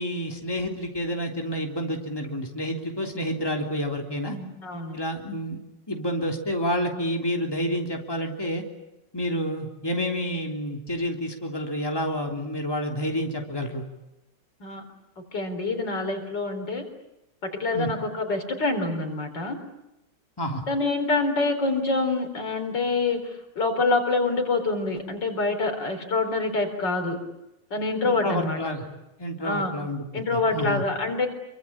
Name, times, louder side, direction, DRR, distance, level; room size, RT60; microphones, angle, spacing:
voice 1, 0.0-4.4 4.9-5.6 5.9-8.6 9.1-13.8 17.7-17.9 20.4-20.6 28.1-28.9 29.2-30.0 30.3-30.8, equal, 15° left, 2 dB, 3.3 m, -29 dB
voice 2, 4.3-5.0 14.6-14.8 15.3-16.9 17.4-19.6 20.7-23.3 23.6-27.2 27.7-28.8 29.4-29.7 30.1-31.3, left 3 dB, 85° left, 5 dB, 4.8 m, -26 dB
27.5 x 24.0 x 8.7 m, 0.92 s
omnidirectional pair, 1.9 m